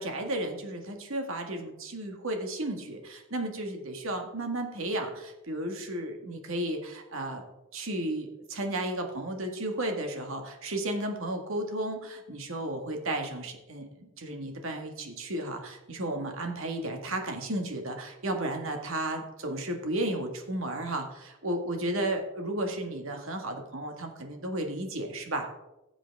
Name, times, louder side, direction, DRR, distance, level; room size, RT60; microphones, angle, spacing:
voice 1, 0.0-7.5 7.7-25.5, right 1 dB, 65° right, 4 dB, 1.8 m, -33 dB
16.0 x 7.4 x 3.5 m, 0.98 s
head